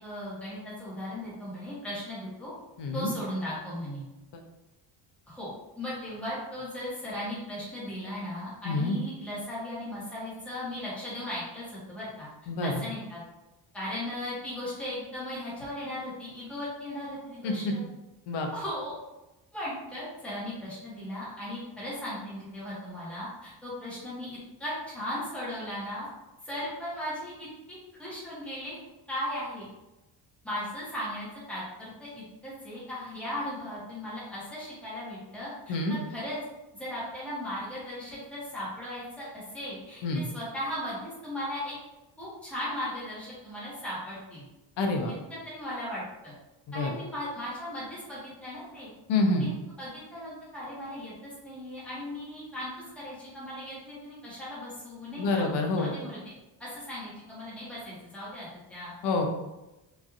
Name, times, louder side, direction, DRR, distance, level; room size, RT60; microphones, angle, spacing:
voice 1, 0.0-2.5 2.9-4.0 5.3-5.5 5.8-12.3 12.6-13.2 13.7-17.8 18.5-19.0 19.5-26.1 26.4-28.7 29.1-29.7 30.4-36.4 36.7-41.7 42.2-44.4 45.4-46.3 46.7-48.9 49.4-49.5 49.8-52.7 52.9-55.4 55.8-56.3 56.6-58.9, left 1 dB, 5° left, -9 dB, 1.0 m, -37 dB
voice 2, 2.8-3.1 8.7-9.0 12.5-12.7 17.4-17.7 18.3-18.5 35.7-36.0 40.0-40.2 44.8-45.1 46.8-46.9 49.1-49.5 55.2-55.9 59.0-59.3, left 2 dB, 65° left, 3 dB, 0.6 m, -27 dB
3.1 x 2.5 x 2.3 m, 1.0 s
cardioid pair, 155°, 45 cm